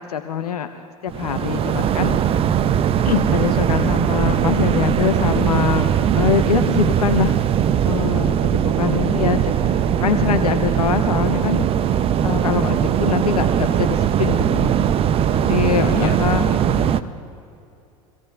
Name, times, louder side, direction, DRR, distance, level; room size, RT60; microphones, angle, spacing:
voice 1, 0.1-0.7 1.0-2.2 3.0-5.9 6.1-7.4 7.8-14.7 15.3-16.5, left 8 dB, 85° left, 8 dB, 0.7 m, -23 dB
sound 1, 1.1-17.0, right 9 dB, 30° right, 0.5 m, -19 dB
voice 2, 7.0-7.4 10.7-11.0 15.4-17.2, left 11 dB, 50° left, 7 dB, 1.1 m, -34 dB
24.0 x 16.5 x 2.3 m, 2.6 s
hypercardioid pair, 85°, 19 cm